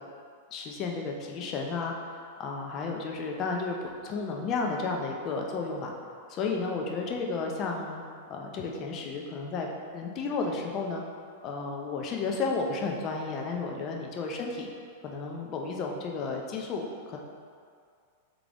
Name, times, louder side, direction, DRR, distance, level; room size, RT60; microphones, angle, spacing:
voice 1, 0.5-5.9 6.3-8.0 8.3-9.7 9.9-11.0 11.4-14.7 15.0-17.2, left 4 dB, 35° left, 1 dB, 0.6 m, -32 dB
3.8 x 3.2 x 3.5 m, 2.2 s
hypercardioid pair, 120°, 0 cm